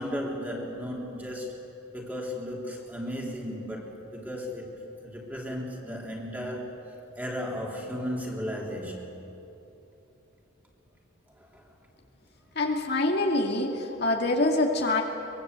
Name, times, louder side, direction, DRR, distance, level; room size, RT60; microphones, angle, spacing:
voice 1, 0.0-1.5 1.9-6.8 7.2-9.3 11.3-11.6, equal, 10° right, -2 dB, 3.5 m, -35 dB
voice 2, 12.6-15.0, left 2 dB, 55° left, 1 dB, 2.3 m, -25 dB
23.5 x 22.0 x 8.2 m, 3.0 s
head